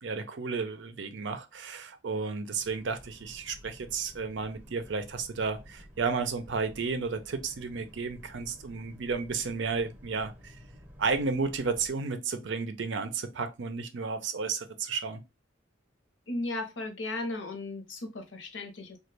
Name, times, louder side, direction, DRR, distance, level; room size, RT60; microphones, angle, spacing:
voice 1, 0.0-10.6 11.0-15.2, right 4 dB, 70° right, 0.5 m, -32 dB
Boat Water vehicle, 2.5-11.9, equal, 10° right, 0.7 m, -52 dB
voice 2, 16.3-19.0, left 2 dB, 75° left, 0.8 m, -36 dB
3.1 x 2.3 x 3.2 m
head